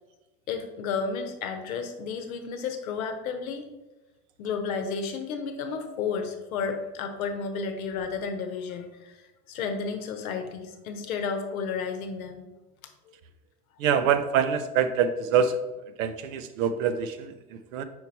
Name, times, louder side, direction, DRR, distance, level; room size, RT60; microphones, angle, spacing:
voice 1, 0.5-3.7 4.4-9.2 9.5-12.4, left 5 dB, 65° left, 6 dB, 0.9 m, -32 dB
voice 2, 13.8-15.6 16.0-17.8, right 7 dB, 60° right, 10 dB, 0.6 m, -25 dB
5.2 x 4.6 x 4.1 m, 1.1 s
figure-of-eight pair, 70°, 46 cm